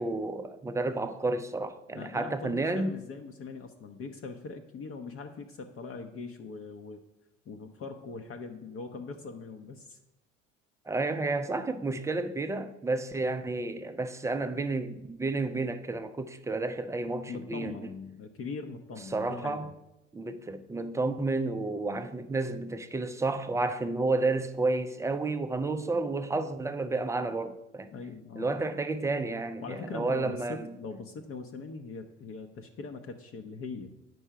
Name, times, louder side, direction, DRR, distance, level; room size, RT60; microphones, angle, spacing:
voice 1, 0.0-2.9 10.9-17.9 19.1-19.7 20.1-27.9 28.4-30.8, right 3 dB, 10° right, 0.4 m, -31 dB
voice 2, 1.9-7.0 7.5-10.0 17.3-19.7 27.9-28.5 29.6-33.9, left 4 dB, 35° left, 0.7 m, -41 dB
9.3 x 5.4 x 4.7 m
figure-of-eight pair, 60°, 38 cm